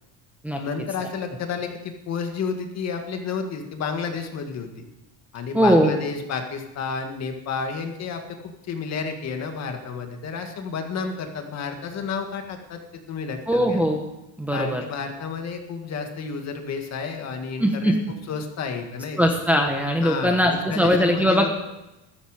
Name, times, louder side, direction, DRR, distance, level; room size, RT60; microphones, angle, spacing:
voice 1, 0.6-4.8 5.3-12.8 13.1-13.8 14.5-17.9 18.3-19.3 20.0-21.5, left 5 dB, 40° left, 5 dB, 2.0 m, -31 dB
voice 2, 5.5-6.0 13.5-14.0 14.4-14.8 17.6-18.0 19.2-21.5, equal, 5° right, 1 dB, 1.1 m, -20 dB
14.5 x 14.0 x 5.0 m, 0.95 s
cardioid pair, 170°, 41 cm